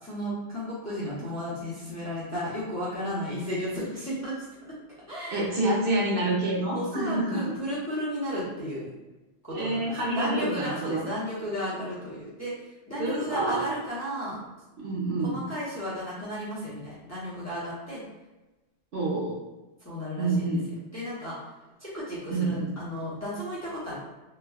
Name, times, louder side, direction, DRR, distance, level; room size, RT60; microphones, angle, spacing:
voice 1, 0.0-4.3 5.1-5.5 6.7-8.9 9.6-12.5 12.9-14.4 15.2-18.0 19.8-20.6 20.9-21.4 21.8-24.0, equal, 15° left, -9 dB, 0.8 m, -34 dB
voice 2, 5.3-7.5 9.5-11.1 13.0-13.6 14.8-15.4 18.9-19.3 20.2-20.6 22.3-22.7, right 2 dB, 60° right, -6 dB, 0.9 m, -27 dB
3.2 x 2.2 x 2.3 m, 1.1 s
omnidirectional pair, 1.1 m